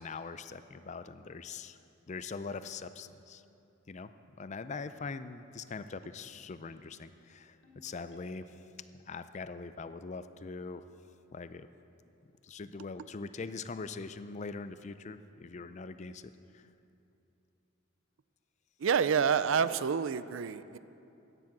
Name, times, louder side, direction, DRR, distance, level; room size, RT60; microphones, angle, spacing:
voice 1, 0.0-1.8 2.1-3.4 3.9-4.1 4.4-8.6 9.1-10.8 11.3-11.7 12.4-16.7, left 4 dB, 35° left, 12 dB, 0.4 m, -42 dB
Ringtone, 7.6-8.8, left 3 dB, 60° left, 2.4 m, -57 dB
voice 2, 18.8-20.8, right 7 dB, 70° right, 14 dB, 0.4 m, -28 dB
14.5 x 10.0 x 6.0 m, 2.8 s
head